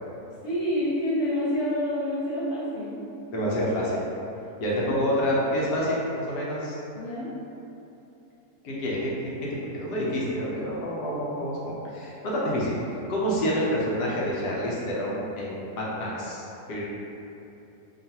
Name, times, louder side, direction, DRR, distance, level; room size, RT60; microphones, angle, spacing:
voice 1, 0.4-3.0 4.8-5.0 6.9-7.3, left 1 dB, 35° left, -10 dB, 1.1 m, -28 dB
voice 2, 3.3-4.0 4.6-6.8 8.6-12.8 13.1-16.8, equal, 85° left, -6 dB, 1.3 m, -28 dB
5.3 x 2.4 x 2.8 m, 3.0 s
omnidirectional pair, 1.7 m